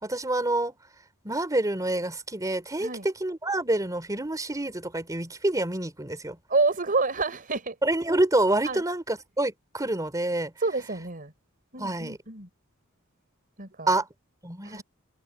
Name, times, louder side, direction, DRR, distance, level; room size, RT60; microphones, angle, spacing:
voice 1, 0.0-0.7 1.2-6.4 7.8-10.5 11.8-12.2 13.9-14.1 14.4-14.8, right 2 dB, 15° right, 3.2 m, -27 dB
voice 2, 6.5-7.7 8.6-8.8 10.6-11.3 11.7-12.5 13.6-13.9 14.6-14.8, right 3 dB, 40° right, 5.2 m, -28 dB
head